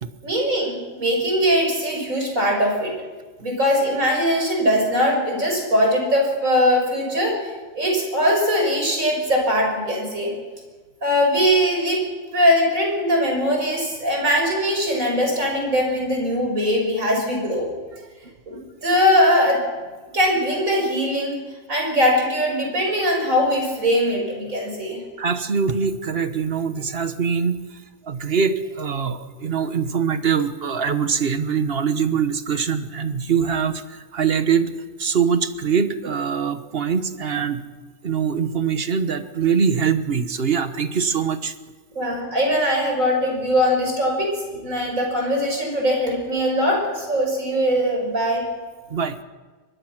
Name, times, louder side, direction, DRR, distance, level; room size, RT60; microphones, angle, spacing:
voice 1, 0.2-2.9 3.4-10.3 11.0-12.0 12.3-17.7 18.5-19.6 20.1-21.4 21.7-25.0 41.9-48.4, equal, 85° right, 0 dB, 6.6 m, -21 dB
voice 2, 25.2-34.7 35.0-37.6 38.0-41.5 48.9-49.2, right 6 dB, 50° right, 10 dB, 1.4 m, -23 dB
23.0 x 21.0 x 6.1 m, 1.3 s
omnidirectional pair, 1.4 m